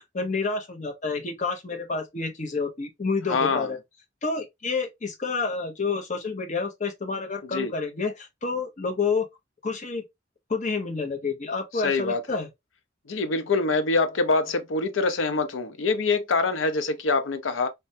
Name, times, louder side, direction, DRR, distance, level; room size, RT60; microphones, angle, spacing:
voice 1, 0.0-3.8 4.2-9.3 9.6-10.0 10.5-12.5, left 4 dB, 40° left, 0.8 m, -29 dB
voice 2, 3.3-3.7 7.5-7.7 11.8-12.4 13.1-17.7, left 3 dB, 90° left, 0.6 m, -25 dB
3.3 x 2.1 x 2.6 m
head